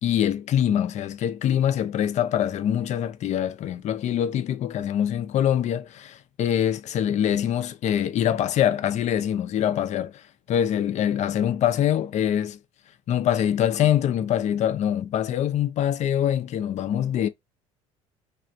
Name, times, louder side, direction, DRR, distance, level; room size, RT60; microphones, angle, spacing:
voice 1, 0.0-12.6 13.1-17.3, left 10 dB, 40° left, 0.5 m, -24 dB
3.2 x 2.5 x 3.8 m
figure-of-eight pair, 60°, 17 cm